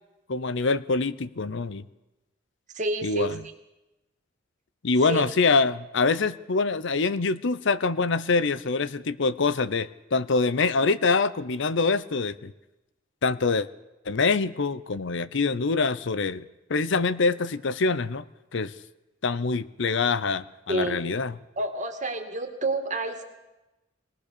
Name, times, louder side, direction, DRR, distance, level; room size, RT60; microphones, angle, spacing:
voice 1, 0.3-1.8 3.0-3.4 4.8-12.5 13.2-13.7 14.1-16.4 16.7-18.3 18.5-18.7 19.2-21.4, left 4 dB, 70° left, 15 dB, 0.7 m, -25 dB
voice 2, 2.7-3.3 5.0-5.2 20.7-21.0 21.6-23.2, right 2 dB, 40° right, 5 dB, 2.2 m, -29 dB
21.5 x 18.5 x 6.8 m, 1.0 s
head